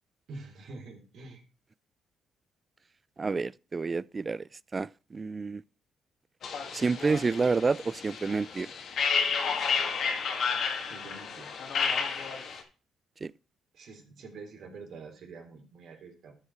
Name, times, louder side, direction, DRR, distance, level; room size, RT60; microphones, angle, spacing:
voice 1, 0.3-1.4 10.8-11.5 13.7-16.3, right 3 dB, 65° right, 3.4 m, -46 dB
voice 2, 3.2-4.4 4.7-5.6 6.7-8.7 13.2-13.3, right 4 dB, 30° right, 0.4 m, -29 dB
sound 1, 6.4-12.6, left 6 dB, 65° left, 2.2 m, -31 dB
13.0 x 5.3 x 4.8 m
cardioid pair, 90°, 0 cm